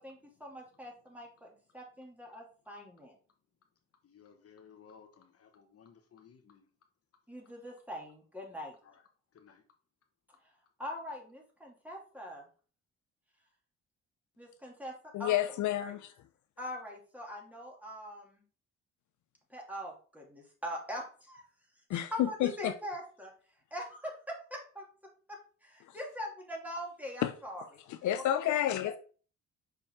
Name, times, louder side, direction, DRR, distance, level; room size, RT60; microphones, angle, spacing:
voice 1, 0.0-3.2 7.3-8.8 10.4-10.5 10.8-12.5 14.4-15.4 15.8-16.0 16.6-18.4 19.5-21.4 21.9-23.3 23.7-24.9 25.3-27.7 28.1-28.2 28.8-28.9, equal, 5° right, 2.6 m, -43 dB
voice 2, 4.0-6.7 8.8-9.0 9.3-9.6, left 7 dB, 50° left, 1.2 m, -58 dB
voice 3, 15.1-16.1 21.9-22.7 25.9-26.0 27.2-27.3 27.9-29.0, left 12 dB, 75° left, 0.6 m, -30 dB
6.0 x 5.1 x 3.6 m
cardioid pair, 90°, 30 cm